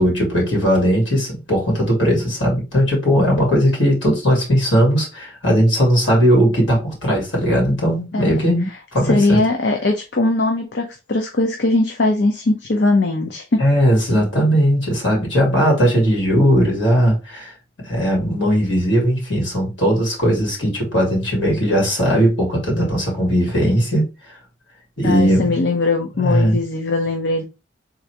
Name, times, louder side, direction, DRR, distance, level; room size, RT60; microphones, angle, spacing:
voice 1, 0.0-9.4 13.6-17.5 17.8-24.4 25.0-25.5 26.2-26.6, equal, 75° left, 2.5 m, -18 dB
voice 2, 9.0-13.6 25.0-27.4, left 2 dB, 60° left, 0.6 m, -20 dB
3.8 x 2.6 x 4.5 m
head